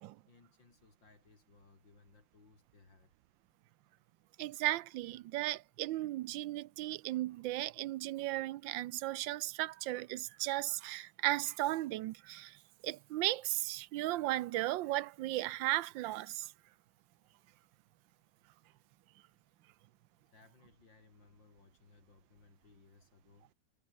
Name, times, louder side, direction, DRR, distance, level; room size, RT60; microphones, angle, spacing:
voice 1, 0.3-3.1 20.3-23.5, left 3 dB, 75° left, 5.0 m, -63 dB
voice 2, 4.4-12.6 12.8-16.5, right 16 dB, 85° right, 1.3 m, -36 dB
omnidirectional pair, 2.0 m